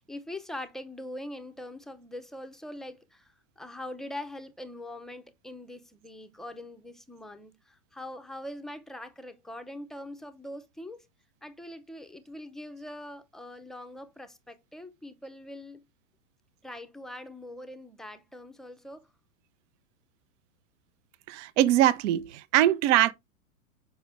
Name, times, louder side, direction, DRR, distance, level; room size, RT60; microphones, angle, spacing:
voice 1, 0.0-11.1 11.4-15.8 16.6-19.1, left 1 dB, ahead, 0.5 m, -42 dB
voice 2, 21.3-23.1, right 13 dB, 55° right, 0.7 m, -22 dB
6.5 x 5.2 x 3.3 m
hypercardioid pair, 110°, 44 cm